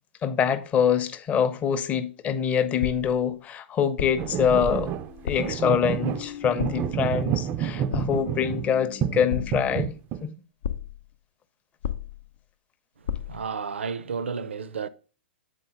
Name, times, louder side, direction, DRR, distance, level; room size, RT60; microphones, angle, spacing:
voice 1, 0.2-4.9 5.2-10.3, left 8 dB, 20° left, 0.6 m, -25 dB
sound 1, 2.8-3.3 4.0-4.4 5.2-5.6 6.6-7.0 7.9-8.3 9.3-9.9 10.6-11.1 11.8-12.4 13.1-13.5, left 8 dB, 65° left, 0.5 m, -33 dB
sound 2, 4.2-8.7 9.0-10.2, right 9 dB, 30° right, 0.3 m, -29 dB
sound 3, 4.4-9.9, left 8 dB, 40° left, 0.9 m, -44 dB
voice 2, 13.0-14.9, right 6 dB, 75° right, 0.5 m, -32 dB
8.3 x 4.0 x 3.8 m
figure-of-eight pair, 115°, 7 cm